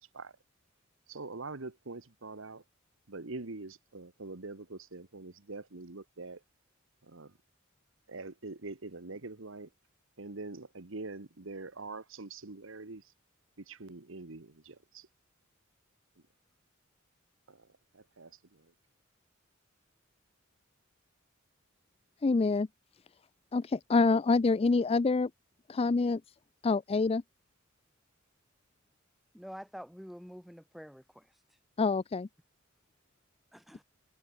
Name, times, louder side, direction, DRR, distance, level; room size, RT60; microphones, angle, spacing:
voice 1, 1.1-2.6 3.1-6.4 7.0-7.3 8.1-9.7 10.2-13.1 13.6-15.1 17.5-17.7 17.9-18.7, right 3 dB, 70° right, 1.4 m, -44 dB
voice 2, 22.2-22.7 23.5-25.3 25.7-26.2 26.6-27.2 31.8-32.3, left 3 dB, 30° left, 0.4 m, -26 dB
voice 3, 29.3-31.3 33.5-33.8, equal, ahead, 6.1 m, -47 dB
head